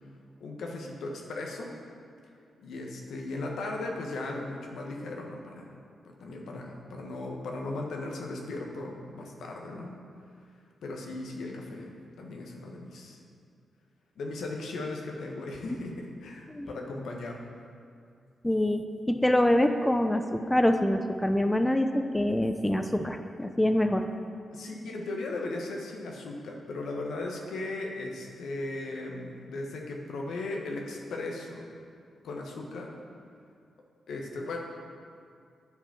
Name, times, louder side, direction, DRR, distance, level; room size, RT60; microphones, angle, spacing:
voice 1, 0.4-1.7 2.6-5.8 6.0-10.0 10.8-13.2 14.2-17.4 24.5-31.7 32.2-33.0 34.1-34.6, left 2 dB, 75° left, 0 dB, 1.3 m, -37 dB
voice 2, 18.4-24.0, left 1 dB, 10° left, 6 dB, 0.6 m, -25 dB
9.6 x 5.0 x 7.2 m, 2.3 s
supercardioid pair, 45°, 0 cm